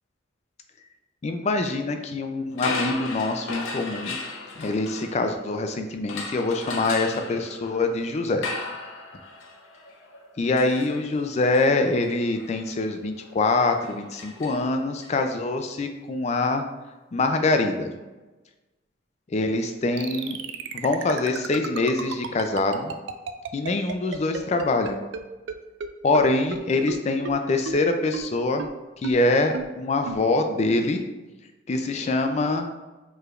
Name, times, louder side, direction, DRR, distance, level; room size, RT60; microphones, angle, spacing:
voice 1, 1.2-4.2 4.6-8.5 10.4-16.6 17.1-17.9 19.3-20.4 20.7-22.9 23.5-25.0 26.0-28.7 29.0-31.0 31.7-32.7, left 2 dB, 35° left, 6 dB, 0.3 m, -24 dB
sound 1, 2.5-5.6 6.1-15.1, left 3 dB, 90° left, 0.6 m, -36 dB
sound 2, 20.0-25.2 25.5-25.6 25.8-25.9 26.1-26.2 26.5-26.6 26.9-27.0 27.3-27.4 27.7-27.8 28.1-28.2 28.6-28.7 29.0-29.1 29.5-29.6 30.1-30.2, right 6 dB, 65° right, 0.3 m, -32 dB
4.7 x 3.2 x 2.4 m, 1.2 s
head